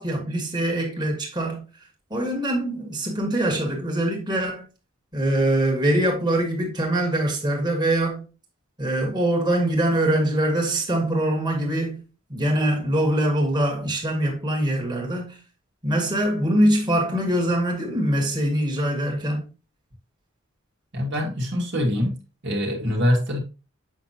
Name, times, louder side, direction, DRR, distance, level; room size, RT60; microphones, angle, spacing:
voice 1, 0.0-1.6 2.1-4.7 5.1-8.2 8.8-12.0 12.3-15.4 15.8-19.5, right 1 dB, 20° right, 2.0 m, -23 dB
voice 2, 20.9-22.2 22.4-23.4, left 1 dB, 60° right, 1.9 m, -24 dB
7.3 x 5.9 x 2.8 m
head